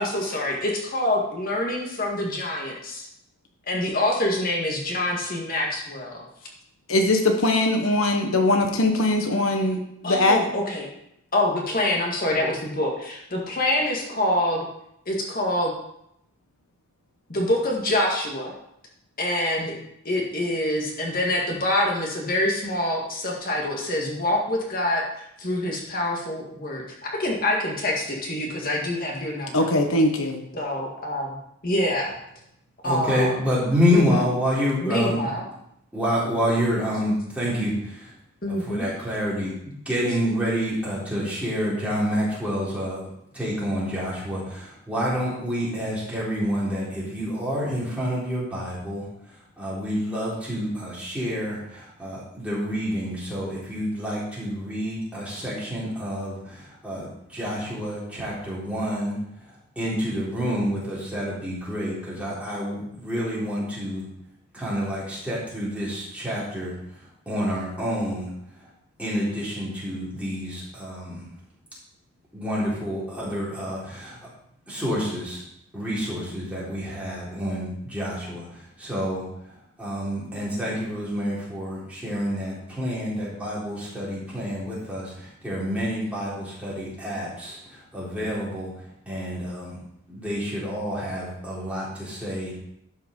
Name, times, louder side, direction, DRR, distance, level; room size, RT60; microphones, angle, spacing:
voice 1, 0.0-3.1 3.7-6.2 10.0-10.9 11.3-14.6 15.1-15.7 17.3-18.5 19.2-19.8 20.0-25.0 25.4-26.8 27.2-29.7 30.5-31.4 31.6-32.2 32.8-33.3 33.9-34.0 34.8-35.4 38.4-38.9, left 1 dB, 40° left, -1 dB, 2.0 m, -26 dB
voice 2, 6.9-10.4 29.5-30.4, left 2 dB, 70° left, 4 dB, 1.2 m, -21 dB
voice 3, 32.8-35.4 35.9-38.2 38.5-43.1 43.3-64.1 64.5-68.7 69.0-71.3 72.3-74.3 74.7-75.4 75.7-89.8 90.1-92.5, equal, 5° right, -8 dB, 3.9 m, -28 dB
12.0 x 5.8 x 5.4 m, 0.76 s
head